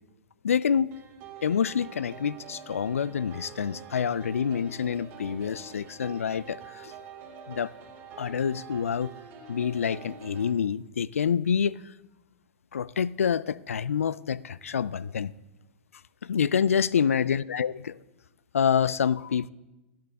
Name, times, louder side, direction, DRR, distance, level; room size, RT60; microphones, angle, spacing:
voice 1, 0.4-1.0 1.4-6.9 7.5-7.7 8.2-9.1 9.5-11.8 12.7-15.3 16.2-18.0 18.5-19.5, left 7 dB, 80° left, 0.4 m, -27 dB
sound 1, 0.9-10.5, right 6 dB, 40° right, 2.8 m, -46 dB
14.0 x 8.6 x 4.1 m
hypercardioid pair, 110°, 7 cm